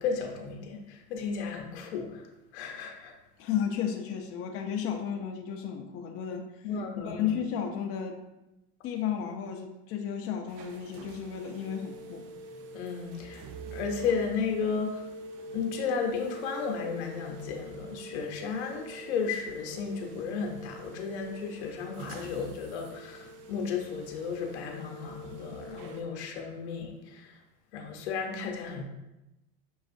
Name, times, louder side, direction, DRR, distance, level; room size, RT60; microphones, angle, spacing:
voice 1, 0.0-3.1 6.6-7.3 12.7-13.4 13.7-15.0 15.5-27.3 27.7-28.8, left 5 dB, 85° left, 2 dB, 0.8 m, -34 dB
voice 2, 3.4-6.4 7.1-8.2 8.8-12.2, left 8 dB, 45° left, 2 dB, 0.6 m, -33 dB
sound 1, 10.5-26.0, right 2 dB, 65° right, 0.6 m, -45 dB
6.2 x 2.4 x 2.5 m, 0.94 s
supercardioid pair, 105°, 32 cm